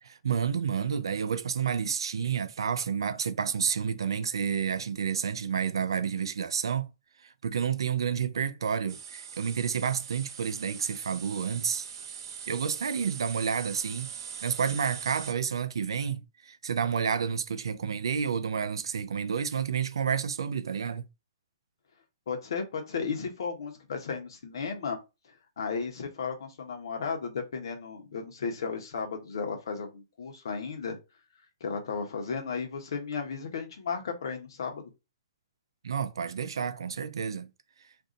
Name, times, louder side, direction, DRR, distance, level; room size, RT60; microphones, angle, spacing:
voice 1, 0.0-6.9 7.2-11.9 12.5-14.1 14.4-21.0 35.8-37.5, right 7 dB, 85° right, 0.4 m, -30 dB
sound 1, 8.9-15.3, right 7 dB, 65° right, 0.8 m, -42 dB
voice 2, 22.3-25.0 25.6-31.0 31.6-34.9, left 5 dB, 70° left, 1.0 m, -34 dB
2.6 x 2.6 x 3.7 m
hypercardioid pair, 140°, 2 cm